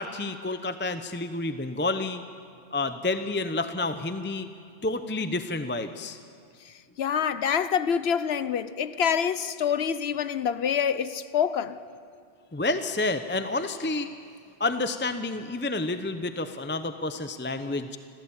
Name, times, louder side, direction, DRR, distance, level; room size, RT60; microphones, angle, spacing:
voice 1, 0.0-2.2 2.7-4.5 4.8-6.2 12.5-14.1 14.6-18.0, left 2 dB, 15° left, 0.6 m, -29 dB
voice 2, 6.6-11.8, left 7 dB, 70° left, 1.0 m, -26 dB
26.0 x 16.5 x 8.8 m
omnidirectional pair, 1.1 m